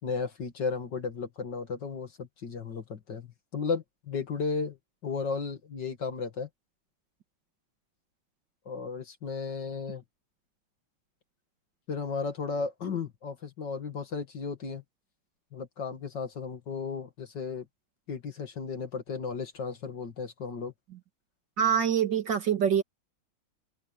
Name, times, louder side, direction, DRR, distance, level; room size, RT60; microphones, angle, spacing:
voice 1, 0.0-4.8 5.0-6.5 8.7-10.0 11.9-14.8 15.5-17.7 18.1-20.7, left 5 dB, 60° left, 2.7 m, -34 dB
voice 2, 21.6-22.8, right 8 dB, 60° right, 2.6 m, -25 dB
open air
omnidirectional pair, 2.2 m